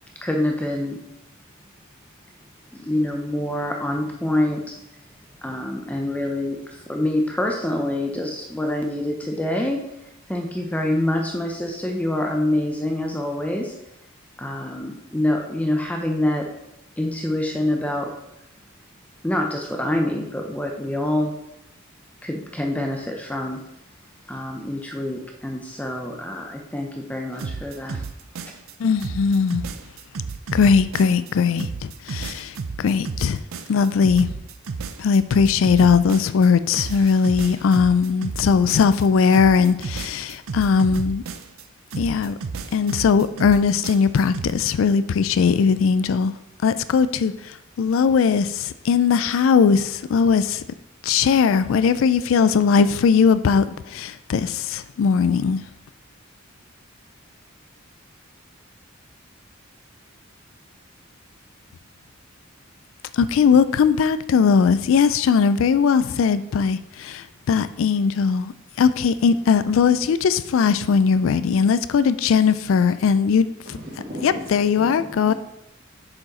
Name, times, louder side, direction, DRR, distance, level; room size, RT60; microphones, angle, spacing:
voice 1, 0.2-1.0 2.7-4.8 5.4-9.8 10.3-13.7 14.4-16.5 17.0-18.1 19.2-21.4 22.2-23.6 24.3-28.0, left 1 dB, 5° left, 2 dB, 0.6 m, -26 dB
sound 1, 27.4-28.7 29.0-31.3 31.6-36.5 36.7-39.1 39.3-41.6 41.9-44.5, right 4 dB, 80° right, 0.5 m, -32 dB
voice 2, 28.8-29.6 30.5-31.7 32.1-32.5 32.8-33.4 33.7-34.3 35.0-41.2 42.0-42.3 42.7-46.3 46.6-47.3 47.8-50.6 51.1-53.6 53.9-55.6 63.2-67.2 67.5-68.5 68.8-73.5 74.2-75.3, left 6 dB, 65° left, 14 dB, 0.3 m, -19 dB
voice 3, 73.7-74.4 74.8-75.3, equal, 50° right, -2 dB, 1.8 m, -35 dB
6.5 x 4.8 x 4.2 m, 0.85 s
head